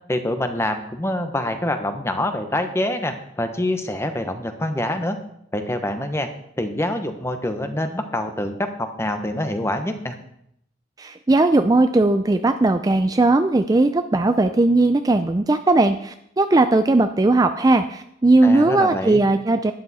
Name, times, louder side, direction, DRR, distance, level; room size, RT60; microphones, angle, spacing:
voice 1, 0.1-5.2 5.5-6.3 6.6-10.2 18.4-19.2, left 1 dB, 15° left, 7 dB, 1.0 m, -25 dB
voice 2, 11.0-19.7, right 2 dB, 20° right, 8 dB, 0.4 m, -18 dB
12.0 x 10.0 x 4.2 m, 0.74 s
head